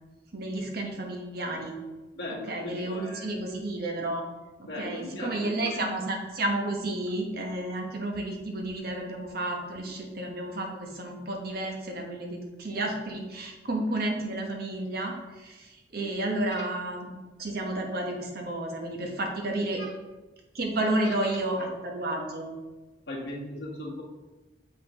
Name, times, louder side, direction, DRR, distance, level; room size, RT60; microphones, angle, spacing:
voice 1, 0.3-1.7 2.5-4.2 4.6-17.1 17.4-19.8 20.5-22.5, right 1 dB, 55° right, 1 dB, 1.1 m, -31 dB
voice 2, 2.1-3.4 4.6-5.9 19.8-19.9 23.1-24.0, left 1 dB, 60° left, -2 dB, 1.4 m, -38 dB
7.3 x 5.5 x 3.0 m, 1.2 s
head